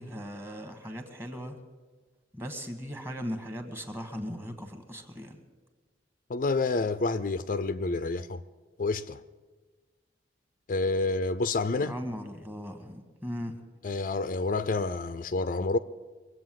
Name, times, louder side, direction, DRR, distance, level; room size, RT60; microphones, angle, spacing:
voice 1, 0.0-1.6 2.3-5.4 11.8-13.6, equal, 15° right, 1.4 m, -38 dB
voice 2, 6.3-8.4 8.8-9.2 10.7-11.9 13.8-15.8, left 3 dB, 45° left, 0.4 m, -28 dB
23.5 x 8.0 x 7.6 m
head